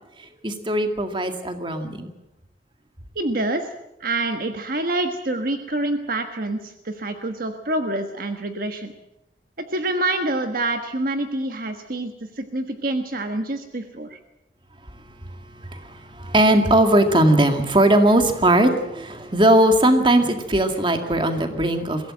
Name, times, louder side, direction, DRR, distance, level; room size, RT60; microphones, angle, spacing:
voice 1, 0.4-2.1 15.2-22.1, right 1 dB, 30° right, 6 dB, 2.1 m, -19 dB
voice 2, 3.1-3.7 4.0-8.9 9.6-14.2, right 2 dB, 50° right, 6 dB, 1.4 m, -26 dB
22.5 x 16.5 x 7.7 m, 0.91 s
head